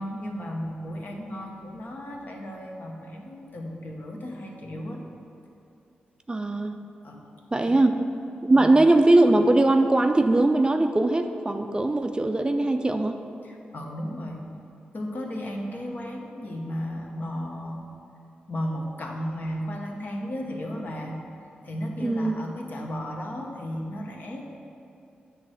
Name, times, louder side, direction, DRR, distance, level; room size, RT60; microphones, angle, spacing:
voice 1, 0.0-5.0 7.0-7.2 7.6-7.9 8.5-8.9 13.4-14.5 14.9-17.8 18.5-21.2 21.6-24.4, equal, 55° left, 0 dB, 1.0 m, -34 dB
voice 2, 6.3-6.8 7.5-7.9 8.4-13.2 22.0-22.4, right 2 dB, 25° right, 6 dB, 0.4 m, -20 dB
8.2 x 3.2 x 6.5 m, 2.6 s
cardioid pair, 55°, 4 cm